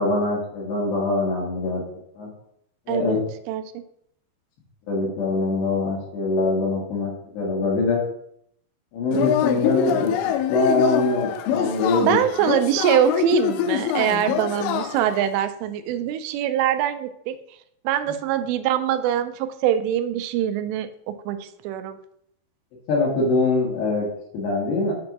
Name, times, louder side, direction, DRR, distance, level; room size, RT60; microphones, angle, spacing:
voice 1, 0.0-1.8 2.2-2.3 2.9-3.2 4.9-8.0 8.9-10.1 10.5-12.2 22.9-24.0 24.3-24.9, left 3 dB, 70° left, -7 dB, 3.3 m, -23 dB
voice 2, 2.9-3.2 3.5-3.8 12.0-17.4 17.8-22.0, right 10 dB, 90° right, 11 dB, 2.8 m, -23 dB
Yell / Cheering, 9.1-15.2, left 10 dB, 90° left, 2.8 m, -25 dB
7.5 x 2.6 x 5.8 m, 0.70 s
omnidirectional pair, 5.0 m